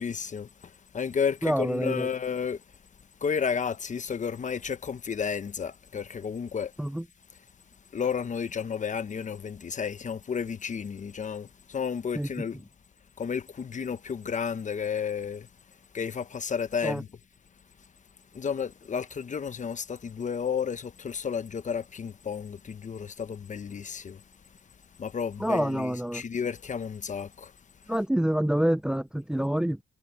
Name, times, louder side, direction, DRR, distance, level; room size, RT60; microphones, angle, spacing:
voice 1, 0.0-2.6 3.2-6.7 7.9-12.6 13.2-15.5 15.9-17.1 18.3-24.2 25.0-27.5, left 6 dB, 40° left, 1.1 m, -32 dB
voice 2, 1.4-2.1 6.8-7.0 12.2-12.3 16.8-17.0 25.4-26.2 27.9-29.8, right 1 dB, 5° right, 0.6 m, -27 dB
cardioid pair, 90°, 20 cm